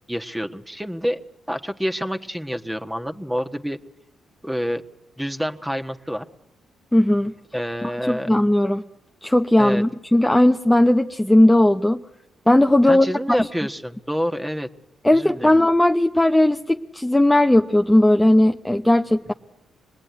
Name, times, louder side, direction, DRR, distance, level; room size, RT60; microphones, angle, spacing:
voice 1, 0.1-1.2 1.5-3.8 4.4-4.8 5.2-6.3 7.5-8.3 9.6-9.8 12.9-14.7 15.1-15.5, equal, 5° right, 6 dB, 1.4 m, -27 dB
voice 2, 6.9-7.3 7.8-8.8 9.2-12.0 12.5-13.4 15.0-19.3, left 1 dB, 10° left, 4 dB, 0.8 m, -17 dB
25.5 x 19.5 x 9.4 m, 0.97 s
supercardioid pair, 50°, 0 cm